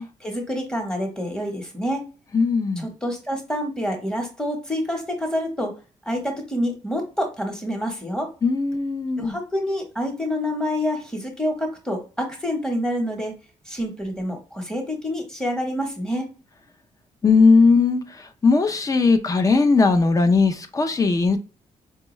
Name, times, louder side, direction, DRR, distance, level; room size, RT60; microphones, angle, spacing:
voice 1, 0.2-2.1 2.8-5.7 6.0-8.3 9.2-13.3 13.7-16.3, equal, 5° left, 1.0 m, -27 dB
voice 2, 2.3-2.9 8.4-9.4 17.2-21.4, left 4 dB, 30° left, 0.5 m, -18 dB
4.5 x 2.2 x 3.0 m
cardioid pair, 115°, 12 cm